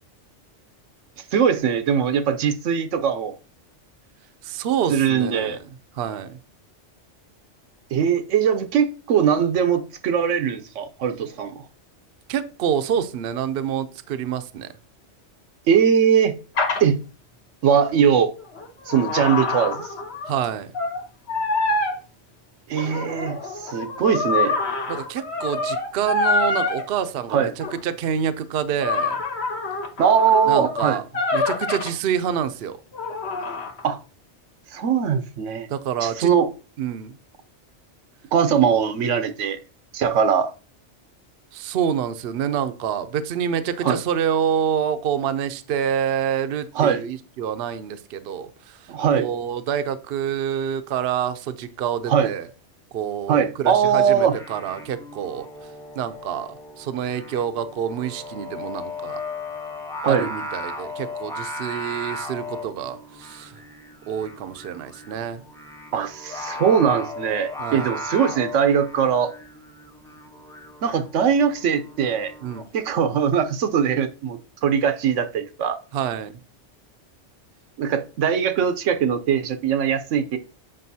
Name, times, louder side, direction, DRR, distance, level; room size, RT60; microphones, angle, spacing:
voice 1, 1.3-3.3 4.9-5.6 7.9-11.6 15.7-16.4 16.8-17.0 17.6-18.3 18.9-19.9 22.7-24.6 27.3-27.5 30.0-31.0 33.8-34.0 34.7-35.7 36.0-36.5 38.3-39.6 39.9-40.5 43.8-44.0 46.8-47.0 48.9-49.3 52.1-52.3 53.3-54.3 60.0-60.3 65.9-69.3 70.8-72.3 72.7-75.8 77.8-80.4, right 7 dB, 80° right, 1.0 m, -21 dB
voice 2, 4.4-5.6 5.9-6.4 12.3-14.7 20.2-20.7 24.9-29.2 30.5-31.0 31.3-32.8 35.7-36.3 36.8-37.2 41.5-52.5 52.9-55.5 56.0-59.2 60.1-63.6 64.1-65.4 67.6-67.9 72.4-72.6 75.9-76.3, right 8 dB, 60° right, 0.7 m, -27 dB
sound 1, 16.6-16.8 18.4-20.5 20.7-21.0 21.3-22.0 22.7-26.8 27.6-27.8 28.8-31.9 32.9-33.8, left 3 dB, 60° left, 1.3 m, -26 dB
Singing, 54.2-72.7, left 2 dB, 5° left, 0.6 m, -36 dB
7.5 x 5.4 x 2.7 m
omnidirectional pair, 1.2 m